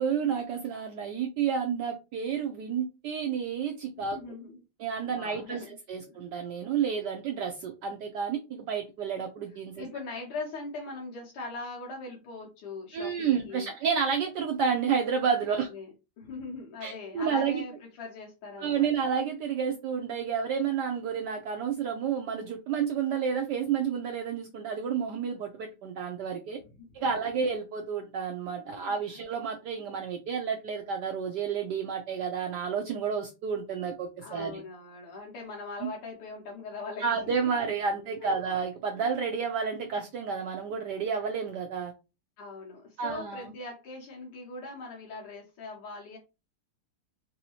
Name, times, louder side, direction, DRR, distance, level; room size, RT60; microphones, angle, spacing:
voice 1, 0.0-4.2 4.8-9.9 12.9-15.7 16.8-17.6 18.6-26.6 26.9-34.6 35.8-35.9 37.0-41.9 43.0-43.5, right 6 dB, 85° right, 0.9 m, -30 dB
voice 2, 3.9-4.6 5.0-5.8 6.1-6.2 9.8-13.7 15.5-17.7 18.0-19.1 26.6-26.9 28.7-29.0 34.2-37.7 38.2-38.4 39.0-39.1 42.4-46.2, left 3 dB, 75° left, 1.7 m, -41 dB
3.9 x 2.7 x 2.8 m
omnidirectional pair, 2.4 m